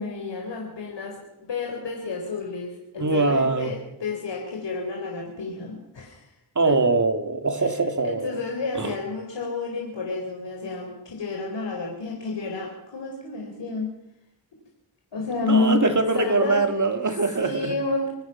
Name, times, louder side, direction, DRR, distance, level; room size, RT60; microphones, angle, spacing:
voice 1, 0.0-6.3 6.6-6.8 7.6-7.8 8.0-13.9 15.1-16.6 17.0-17.1 17.4-18.1, left 3 dB, 75° left, 0 dB, 4.2 m, -30 dB
voice 2, 3.0-3.7 6.5-8.3 8.8-8.9 15.4-17.7, right 3 dB, 45° right, 7 dB, 2.7 m, -23 dB
26.0 x 17.5 x 5.9 m, 0.86 s
cardioid pair, 60°, 43 cm